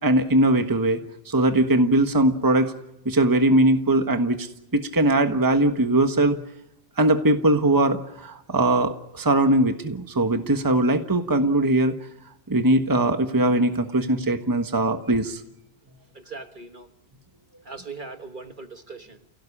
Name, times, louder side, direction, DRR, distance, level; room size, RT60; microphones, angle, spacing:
voice 1, 0.0-1.0 1.3-2.7 3.0-4.5 4.7-6.4 7.0-11.9 12.5-15.4, right 1 dB, 15° right, 7 dB, 1.3 m, -20 dB
voice 2, 16.1-16.9 17.6-19.2, right 4 dB, 40° right, 7 dB, 1.5 m, -39 dB
29.0 x 17.5 x 9.9 m, 0.84 s
omnidirectional pair, 1.4 m